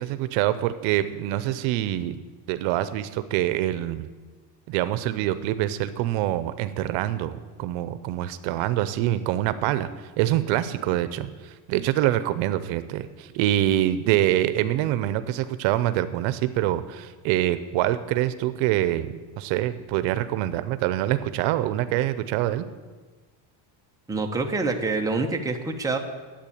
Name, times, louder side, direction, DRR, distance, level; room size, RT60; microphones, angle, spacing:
voice 1, 0.0-2.2 2.5-4.1 4.7-22.7, right 13 dB, 80° right, 13 dB, 0.8 m, -25 dB
voice 2, 24.1-26.0, right 3 dB, 5° right, 2 dB, 1.1 m, -26 dB
10.5 x 8.6 x 8.6 m, 1.4 s
cardioid pair, 145°, 46 cm